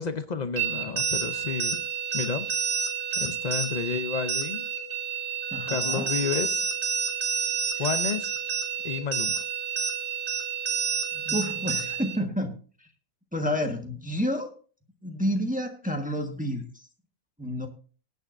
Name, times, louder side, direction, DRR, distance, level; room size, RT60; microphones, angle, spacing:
voice 1, 0.0-1.8 2.1-2.5 3.2-4.7 5.7-6.7 7.8-8.3 8.8-9.4, left 6 dB, 70° left, 10 dB, 0.4 m, -31 dB
sound 1, 0.6-12.2, right 6 dB, 45° right, 1.7 m, -29 dB
voice 2, 5.5-6.1 7.8-8.0 11.1-12.9 13.3-14.6 15.0-16.8 17.4-17.7, equal, 5° right, 3 dB, 1.2 m, -30 dB
20.0 x 9.3 x 2.6 m, 0.38 s
omnidirectional pair, 1.7 m